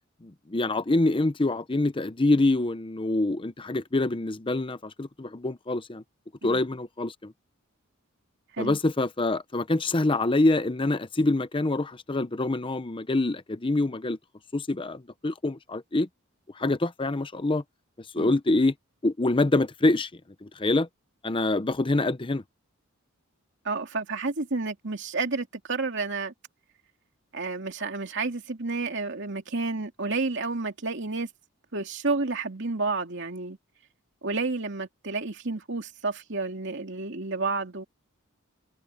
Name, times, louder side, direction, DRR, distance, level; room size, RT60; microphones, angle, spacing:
voice 1, 0.2-6.0 6.4-7.3 8.6-14.2 14.5-16.1 16.6-17.6 18.1-18.7 19.0-20.1 20.4-20.9 21.2-22.4, left 2 dB, 25° left, 0.7 m, -25 dB
voice 2, 23.6-26.3 27.3-31.3 31.7-33.6 34.2-37.8, right 3 dB, 60° right, 2.6 m, -30 dB
head